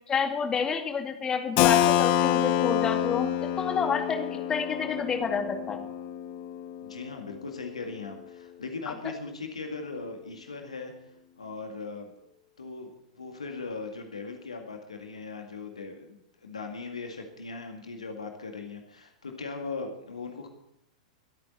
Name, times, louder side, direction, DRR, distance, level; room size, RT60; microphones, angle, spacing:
voice 1, 0.1-5.8, left 6 dB, 20° left, 5 dB, 2.1 m, -29 dB
Keyboard (musical), 1.6-7.1, left 11 dB, 40° left, 1.1 m, -27 dB
voice 2, 6.8-10.9 11.4-12.1 12.6-20.5, left 4 dB, 75° left, 4 dB, 2.0 m, -39 dB
24.0 x 8.7 x 4.3 m, 0.79 s
figure-of-eight pair, 95°, 3 cm